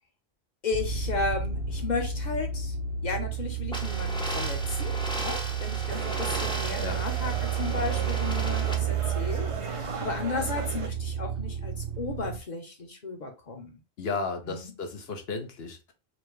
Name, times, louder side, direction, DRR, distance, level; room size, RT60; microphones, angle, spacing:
voice 1, 0.6-2.7 3.0-13.8 14.5-14.7, left 4 dB, 45° left, 1.1 m, -34 dB
sound 1, 0.7-12.4, right 7 dB, 70° right, 0.9 m, -31 dB
sound 2, 3.7-8.7, equal, 5° left, 0.6 m, -36 dB
sound 3, 5.9-10.9, right 5 dB, 40° right, 0.5 m, -38 dB
voice 2, 14.0-15.9, left 4 dB, 65° left, 1.1 m, -34 dB
4.3 x 2.7 x 3.2 m
omnidirectional pair, 1.1 m